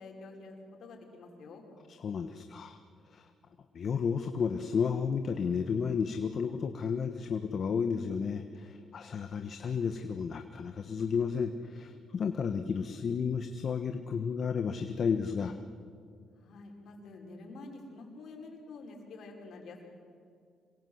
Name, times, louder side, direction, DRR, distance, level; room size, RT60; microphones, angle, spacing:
voice 1, 0.0-1.6 16.3-19.9, left 3 dB, 70° left, 1 dB, 5.6 m, -48 dB
voice 2, 2.0-2.8 3.1-3.2 3.7-15.5, left 6 dB, 55° left, 7 dB, 1.4 m, -32 dB
27.0 x 23.0 x 8.1 m, 2.2 s
cardioid pair, 90°, 0 cm